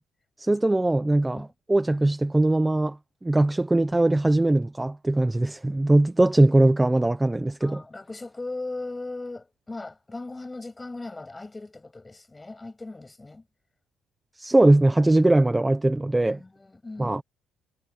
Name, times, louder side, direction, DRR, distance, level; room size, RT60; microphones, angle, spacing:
voice 1, 0.4-3.0 3.2-7.8 14.4-16.4 17.0-17.2, right 2 dB, 10° right, 0.9 m, -21 dB
voice 2, 7.6-13.4 16.3-17.2, left 2 dB, 15° left, 7.9 m, -38 dB
cardioid pair, 125°, 0 cm